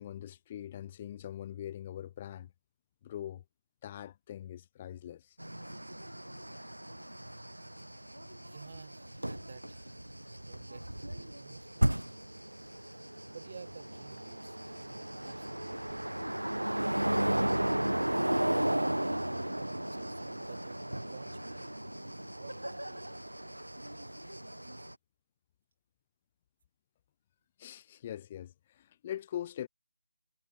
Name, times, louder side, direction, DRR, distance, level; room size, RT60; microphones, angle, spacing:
voice 1, 0.0-2.5 3.0-3.4 3.8-5.4 27.6-29.7, left 11 dB, 25° left, 1.1 m, -42 dB
sound 1, 5.4-24.9, right 1 dB, 85° right, 0.9 m, -35 dB
voice 2, 8.4-10.0 10.3-12.1 13.3-16.0 18.5-21.8 22.3-23.0, right 6 dB, 40° right, 2.5 m, -52 dB
figure-of-eight pair, 155°, 0 cm